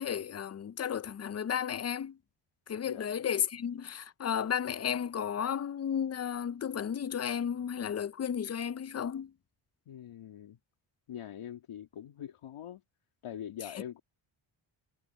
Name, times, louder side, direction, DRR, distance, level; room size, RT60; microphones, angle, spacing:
voice 1, 0.0-2.2 2.7-9.3, left 8 dB, 35° left, 0.5 m, -33 dB
voice 2, 2.8-3.2 9.9-10.6 11.1-12.8 13.2-14.0, left 10 dB, 85° left, 2.6 m, -43 dB
cardioid pair, 120°, 49 cm